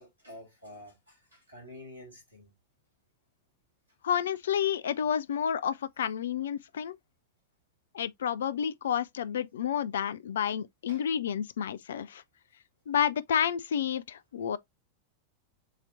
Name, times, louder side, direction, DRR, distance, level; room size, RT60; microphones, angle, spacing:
voice 1, 0.0-2.5 10.9-11.0, left 1 dB, 85° right, 3.1 m, -49 dB
voice 2, 4.0-7.0 7.9-12.2 12.9-14.6, left 8 dB, 65° left, 0.3 m, -30 dB
7.1 x 2.9 x 2.5 m
figure-of-eight pair, 90°, 0 cm